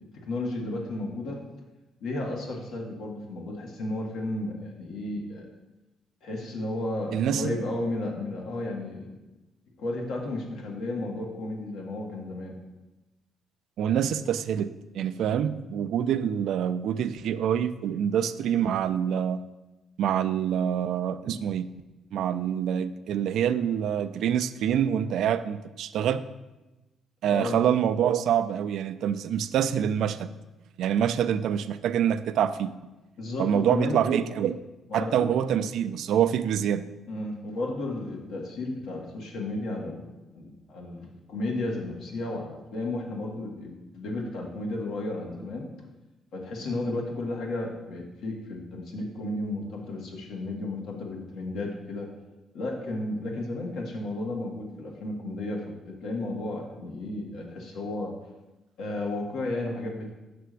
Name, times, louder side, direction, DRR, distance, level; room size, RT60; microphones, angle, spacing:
voice 1, 0.1-1.4 2.0-5.5 6.2-9.1 9.8-12.6 27.3-27.6 33.2-34.0 34.9-35.1 37.1-45.7 46.3-52.1 52.5-58.1 58.8-60.1, left 2 dB, 75° left, 0 dB, 1.4 m, -33 dB
voice 2, 7.1-7.6 13.8-14.7 14.9-19.4 20.0-21.7 22.1-26.2 27.2-30.3 30.8-32.7 33.4-34.6 34.9-36.8, right 9 dB, 75° right, 13 dB, 0.3 m, -26 dB
6.7 x 3.4 x 6.1 m, 1.1 s
cardioid pair, 90°, 0 cm